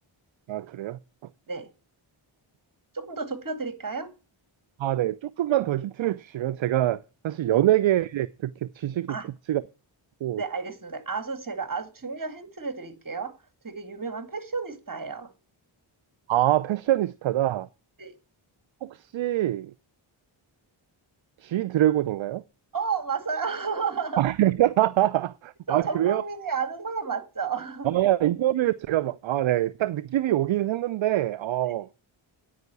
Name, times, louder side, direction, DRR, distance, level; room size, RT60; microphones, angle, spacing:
voice 1, 0.5-1.0 4.8-7.0 7.2-9.2 9.5-9.6 10.2-10.4 16.3-17.7 18.8-19.7 21.4-22.4 24.2-26.2 27.8-31.9, right 13 dB, 70° right, 0.5 m, -24 dB
voice 2, 2.9-4.1 7.5-7.6 9.1-9.3 10.4-13.4 13.6-15.3 18.0-18.1 22.7-24.2 25.7-27.9, right 5 dB, 40° right, 2.1 m, -32 dB
9.2 x 5.5 x 8.1 m
cardioid pair, 50°, 49 cm